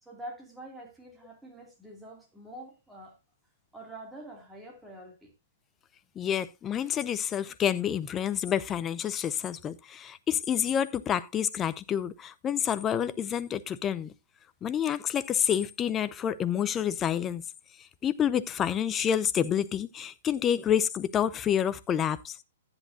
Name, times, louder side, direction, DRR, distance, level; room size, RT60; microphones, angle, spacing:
voice 1, 0.0-3.2 3.7-5.3, right 1 dB, 5° right, 2.7 m, -46 dB
voice 2, 6.2-14.1 14.6-17.4 17.8-22.4, left 9 dB, 15° left, 0.6 m, -28 dB
11.0 x 10.0 x 2.7 m
hypercardioid pair, 165°, 0 cm